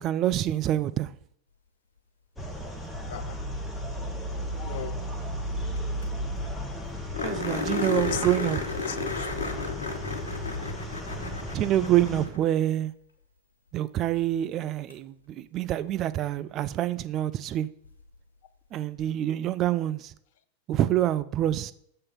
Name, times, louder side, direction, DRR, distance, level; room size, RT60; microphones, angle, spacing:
voice 1, 0.0-1.1 7.2-8.6 11.5-12.9 13.7-17.7 18.7-20.1 20.7-21.7, right 12 dB, 35° right, 0.3 m, -26 dB
sound 1, 2.4-12.3, equal, 10° left, 1.1 m, -34 dB
voice 2, 3.1-3.4 4.6-5.1 7.4-9.3, left 9 dB, 55° left, 0.5 m, -37 dB
sound 2, 5.8-5.9 6.0-6.1 6.4-6.5 7.1-12.6 14.9-15.0 17.8-17.9, left 4 dB, 70° left, 1.2 m, -33 dB
6.5 x 3.7 x 5.8 m
figure-of-eight pair, 90°, 0 cm